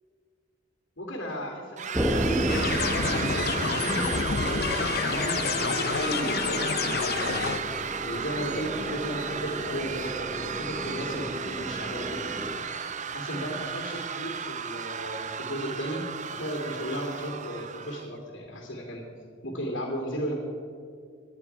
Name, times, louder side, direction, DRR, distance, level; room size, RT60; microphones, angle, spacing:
voice 1, 1.0-4.8 5.1-7.6 8.0-12.3 13.1-19.0 19.4-20.3, equal, 70° left, -2 dB, 2.7 m, -35 dB
sound 1, 1.8-18.1, right 7 dB, 40° right, 0.7 m, -34 dB
sound 2, 1.9-12.6, equal, 10° right, 0.9 m, -33 dB
sound 3, 2.5-7.6, left 6 dB, 55° left, 0.6 m, -29 dB
19.0 x 11.0 x 4.7 m, 2.3 s
head